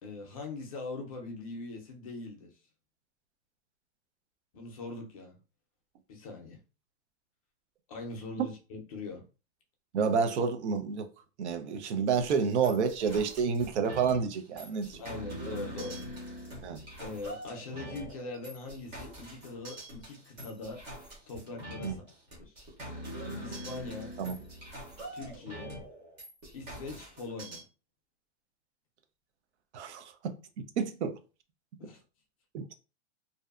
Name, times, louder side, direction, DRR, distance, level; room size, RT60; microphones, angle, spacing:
voice 1, 0.0-2.5 4.5-5.4 6.1-6.6 7.9-9.2 15.0-16.1 17.0-20.8 21.3-22.0 22.4-22.5 23.4-24.1 25.1-25.8 26.5-27.6 31.8-32.0, left 3 dB, 35° left, 0.5 m, -41 dB
voice 2, 9.9-11.1 11.4-15.0 16.6-16.8 21.8-22.0 24.2-24.4 29.7-30.3 30.8-31.2 32.5-32.7, right 6 dB, 85° right, 0.6 m, -29 dB
sound 1, 12.1-27.6, equal, 15° right, 0.7 m, -44 dB
2.6 x 2.1 x 2.4 m
supercardioid pair, 175°, 33 cm